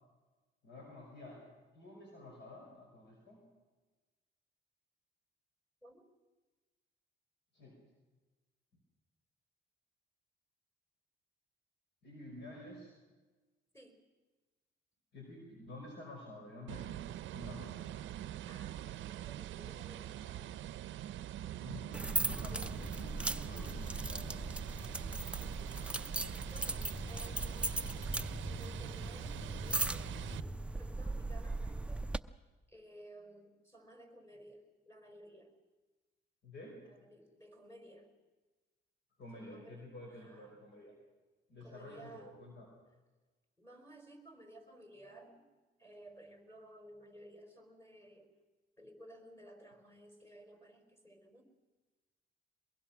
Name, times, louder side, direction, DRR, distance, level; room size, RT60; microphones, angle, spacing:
voice 1, 0.6-1.5 1.7-3.4 7.5-7.8 12.0-12.9 15.1-17.8 21.6-24.4 27.0-27.5 36.4-36.8 39.2-40.9 41.5-42.7, left 1 dB, 60° left, 0 dB, 5.6 m, -51 dB
sound 1, 16.7-30.4, right 12 dB, 75° right, 0.6 m, -44 dB
voice 2, 18.5-20.6 22.5-22.7 26.5-27.9 28.4-32.0 32.7-35.6 36.8-38.1 39.3-39.8 40.1-40.6 41.6-42.4 43.6-45.5 45.8-48.4 48.8-51.4, right 1 dB, 10° left, 4 dB, 4.6 m, -56 dB
sound 2, 21.9-32.2, right 2 dB, 5° right, 0.6 m, -38 dB
22.5 x 22.0 x 6.1 m, 1.3 s
cardioid pair, 90°, 20 cm